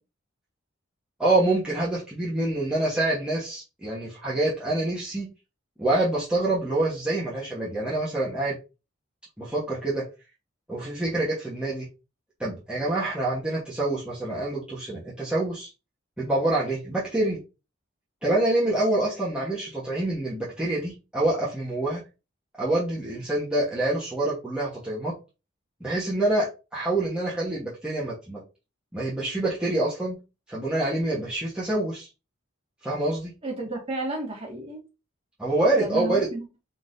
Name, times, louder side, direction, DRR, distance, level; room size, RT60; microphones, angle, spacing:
voice 1, 1.2-5.3 5.8-8.6 9.4-10.0 10.7-11.9 12.4-15.7 16.2-17.4 18.2-22.0 22.6-25.1 25.8-28.4 28.9-30.2 30.5-32.1 32.8-33.3 35.4-36.3, right 2 dB, 5° right, 1.2 m, -26 dB
voice 2, 33.4-34.8 35.8-36.5, right 2 dB, 30° right, 1.9 m, -32 dB
4.7 x 3.9 x 2.7 m
head